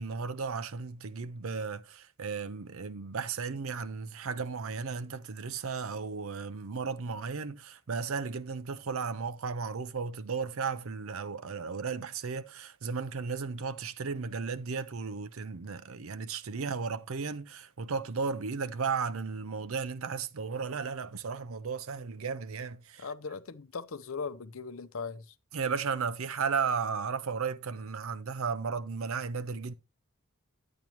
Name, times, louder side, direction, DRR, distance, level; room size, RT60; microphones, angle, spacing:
voice 1, 0.0-23.1 25.5-29.7, right 5 dB, 75° right, 0.6 m, -35 dB
voice 2, 23.0-25.3, left 5 dB, 70° left, 0.7 m, -39 dB
10.5 x 8.8 x 2.9 m
head